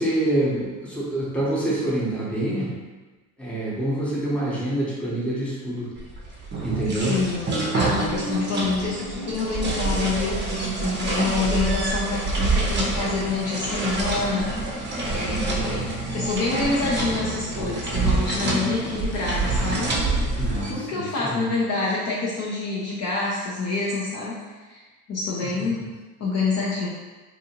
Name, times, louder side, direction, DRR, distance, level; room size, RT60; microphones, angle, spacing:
voice 1, 0.0-2.7 3.4-5.9 6.6-7.2 20.4-21.5 25.6-25.7, right 1 dB, 5° left, -7 dB, 0.9 m, -26 dB
sound 1, 6.0-20.7, right 2 dB, 25° right, 0.7 m, -26 dB
voice 2, 7.0-15.8 16.1-19.9 20.7-24.4 24.7-25.8 26.2-26.9, left 3 dB, 35° left, -6 dB, 0.7 m, -27 dB
2.6 x 2.6 x 2.9 m, 1.2 s
hypercardioid pair, 80°, 44 cm